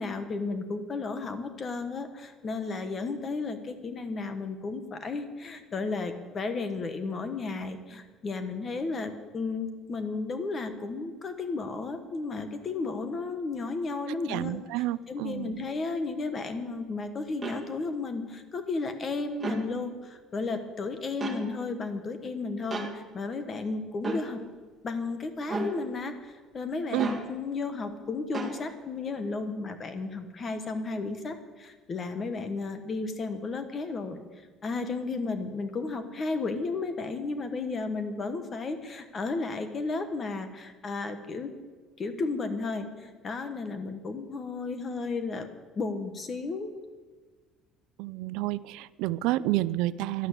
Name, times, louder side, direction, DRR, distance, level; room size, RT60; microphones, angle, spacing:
voice 1, 0.0-14.6 15.1-24.4 24.8-34.2 34.6-41.5 42.0-45.5 45.8-46.7, left 3 dB, 25° left, 9 dB, 1.2 m, -33 dB
voice 2, 14.1-15.6 26.9-27.1 48.0-50.3, right 16 dB, 80° right, 17 dB, 0.5 m, -30 dB
sound 1, 17.4-17.6 19.3-19.6 21.2-21.4 22.7-22.9 24.0-24.2 25.5-25.7 27.0-27.2 28.3-28.6, right 2 dB, 10° right, 2.1 m, -32 dB
12.0 x 12.0 x 8.2 m, 1.4 s
cardioid pair, 175°, 0 cm